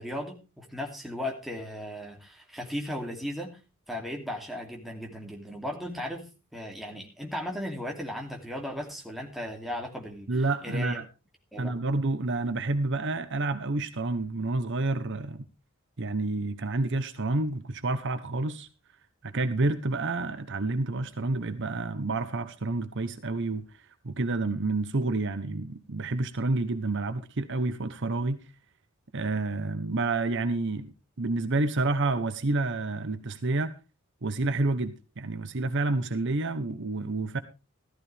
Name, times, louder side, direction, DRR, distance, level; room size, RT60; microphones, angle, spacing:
voice 1, 0.0-3.6 3.9-10.3 10.6-11.0 11.5-11.7, left 1 dB, ahead, 2.7 m, -36 dB
voice 2, 10.3-11.1 11.6-15.4 16.0-18.7 19.2-28.4 29.1-33.7 34.2-37.4, right 2 dB, 55° right, 0.9 m, -29 dB
14.5 x 14.0 x 3.4 m
head